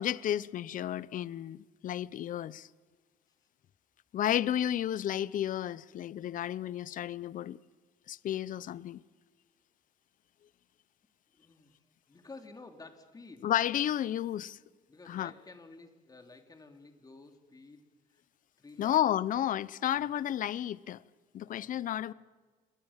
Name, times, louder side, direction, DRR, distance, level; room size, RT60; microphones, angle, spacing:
voice 1, 0.0-2.7 4.1-7.6 8.1-9.0 13.4-14.6 15.1-15.3 18.8-21.0 21.3-22.1, left 11 dB, 50° left, 0.8 m, -32 dB
voice 2, 11.3-13.5 14.9-18.2 18.6-19.0 19.8-20.1 21.5-22.0, left 3 dB, 20° left, 3.3 m, -53 dB
29.5 x 23.0 x 7.4 m
cardioid pair, 110°, 17 cm